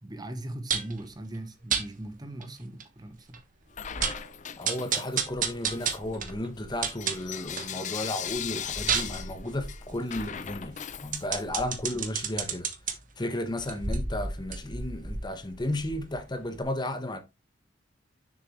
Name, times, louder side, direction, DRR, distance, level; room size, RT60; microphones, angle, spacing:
voice 1, 0.0-3.4 11.9-12.0, right 1 dB, 20° right, 0.9 m, -39 dB
sound 1, 0.7-1.0 1.7-1.9 2.4-2.5 2.8-2.9 3.3-3.4 3.8-4.3 4.6-7.7 8.1-12.9 13.5-16.2 16.6-16.7, right 6 dB, 45° right, 1.3 m, -32 dB
Bell / Coin (dropping), 3.7-5.3 5.7-11.6, left 9 dB, 40° left, 0.5 m, -39 dB
voice 2, 4.6-12.7 13.2-17.2, left 1 dB, 25° left, 1.1 m, -34 dB
6.8 x 6.7 x 3.2 m
head